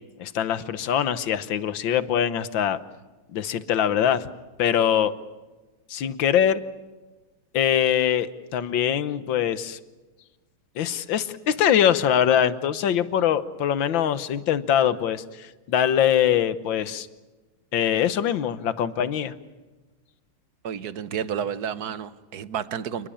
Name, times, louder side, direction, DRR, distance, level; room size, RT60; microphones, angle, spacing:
voice 1, 0.2-2.8 3.3-4.3 4.6-5.1 5.9-6.6 7.5-8.3 8.5-9.8 10.8-17.1 17.7-19.3, left 9 dB, 65° left, 14 dB, 1.7 m, -23 dB
voice 2, 20.6-23.1, right 8 dB, 55° right, 14 dB, 1.3 m, -31 dB
29.0 x 20.5 x 8.7 m, 1.2 s
omnidirectional pair, 2.3 m